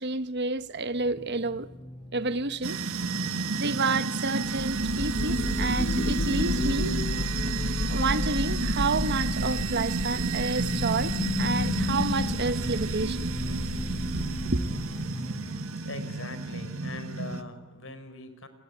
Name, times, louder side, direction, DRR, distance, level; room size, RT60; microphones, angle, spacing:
voice 1, 0.0-1.7 2.1-2.8 3.6-6.9 7.9-13.3 14.1-14.6, right 3 dB, 50° right, 1.2 m, -30 dB
sound 1, 0.6-15.6, equal, 20° left, 3.8 m, -42 dB
sound 2, 2.6-17.4, right 4 dB, 70° right, 1.7 m, -31 dB
sound 3, 4.4-15.1, left 2 dB, 40° left, 0.9 m, -31 dB
voice 2, 15.8-18.5, left 2 dB, 60° left, 4.3 m, -41 dB
29.5 x 21.5 x 9.2 m
head